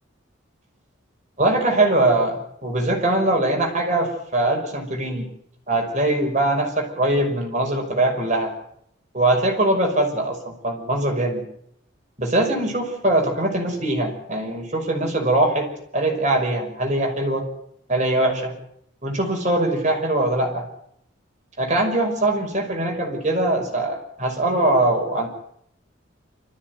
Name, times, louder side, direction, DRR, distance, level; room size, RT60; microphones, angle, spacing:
voice 1, 1.4-5.3 5.7-8.5 9.1-11.4 12.2-17.5 17.9-18.5 19.0-20.7 21.6-25.3, right 1 dB, 35° right, 2 dB, 5.6 m, -22 dB
26.5 x 14.5 x 9.4 m, 0.72 s
head